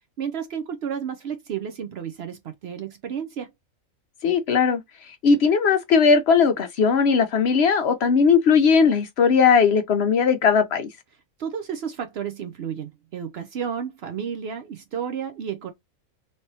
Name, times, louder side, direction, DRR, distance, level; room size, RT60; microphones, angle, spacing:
voice 1, 0.2-3.5 11.4-15.7, right 8 dB, 60° right, 0.7 m, -32 dB
voice 2, 4.2-4.8 5.1-10.9, left 5 dB, 60° left, 0.7 m, -18 dB
3.2 x 3.0 x 2.6 m
omnidirectional pair, 1.4 m